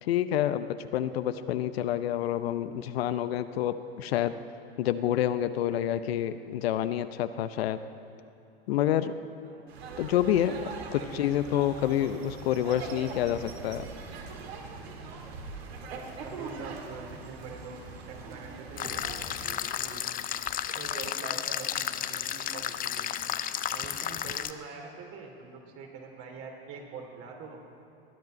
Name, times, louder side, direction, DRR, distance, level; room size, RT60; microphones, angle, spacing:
voice 1, 0.0-4.4 4.8-7.8 8.7-9.1 10.0-13.8, left 11 dB, 70° left, 11 dB, 0.8 m, -28 dB
sound 1, 9.7-19.5, right 4 dB, 75° right, 2.0 m, -42 dB
voice 2, 16.2-20.0 20.7-23.1 23.7-27.6, right 4 dB, 45° right, 2 dB, 3.0 m, -44 dB
sound 2, 18.8-24.5, left 10 dB, 25° left, 0.6 m, -33 dB
20.0 x 10.5 x 5.2 m, 2.8 s
hypercardioid pair, 95°, 32 cm